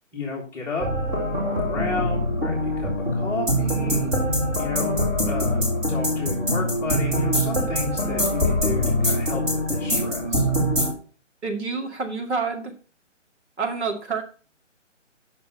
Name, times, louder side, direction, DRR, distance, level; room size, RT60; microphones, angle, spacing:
voice 1, 0.1-0.9 1.4-4.1 4.6-10.5, left 4 dB, 5° left, -5 dB, 1.5 m, -32 dB
sound 1, 0.8-10.9, equal, 10° right, 1.6 m, -23 dB
voice 2, 11.4-12.7 13.6-14.2, right 4 dB, 60° right, 3 dB, 2.4 m, -28 dB
8.2 x 5.9 x 5.5 m, 0.36 s
hypercardioid pair, 160°, 37 cm